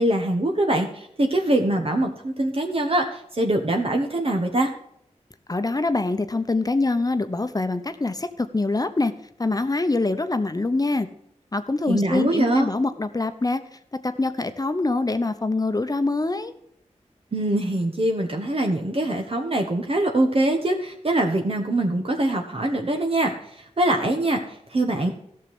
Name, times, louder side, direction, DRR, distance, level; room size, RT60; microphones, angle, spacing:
voice 1, 0.0-4.7 11.9-12.7 17.3-23.3 23.6-24.4 24.7-25.1, right 1 dB, 50° right, 2 dB, 1.4 m, -23 dB
voice 2, 5.5-9.1 9.4-11.1 11.5-16.5, left 2 dB, 30° left, 9 dB, 0.9 m, -24 dB
13.5 x 6.7 x 5.8 m, 0.73 s
cardioid pair, 55°, 13 cm